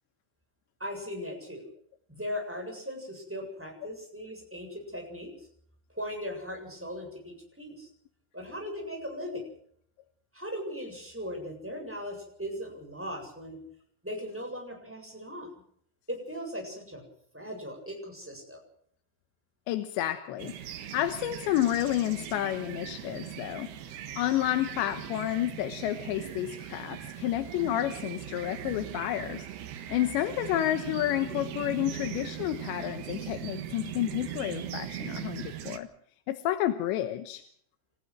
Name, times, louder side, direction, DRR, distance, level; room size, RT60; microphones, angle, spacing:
voice 1, 0.8-1.7 2.1-5.5 5.9-7.9 8.3-9.4 10.3-13.6 14.0-15.5 16.1-17.0 17.3-18.6, equal, 5° right, 1 dB, 7.1 m, -38 dB
voice 2, 19.7-35.9 36.3-37.5, left 13 dB, 85° left, 9 dB, 3.3 m, -30 dB
sound 1, 20.4-35.8, right 11 dB, 70° right, 3.4 m, -40 dB
29.5 x 15.0 x 6.3 m, 0.63 s
omnidirectional pair, 5.0 m